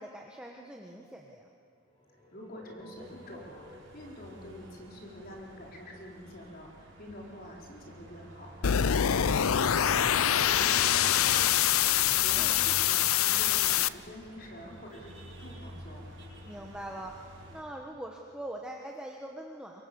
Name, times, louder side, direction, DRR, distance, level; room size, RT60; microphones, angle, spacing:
voice 1, 0.0-1.5 12.4-12.6 16.5-17.2 17.5-19.9, right 1 dB, 5° right, 0 dB, 1.3 m, -42 dB
sound 1, 1.8-5.9, equal, 25° left, 5.4 m, -54 dB
voice 2, 2.3-16.1, left 1 dB, 45° left, -1 dB, 4.5 m, -47 dB
sound 2, 2.9-17.6, right 1 dB, 55° right, 5.0 m, -49 dB
sound 3, 8.6-13.9, left 10 dB, 85° left, 0.6 m, -25 dB
26.5 x 23.5 x 7.1 m, 2.7 s
head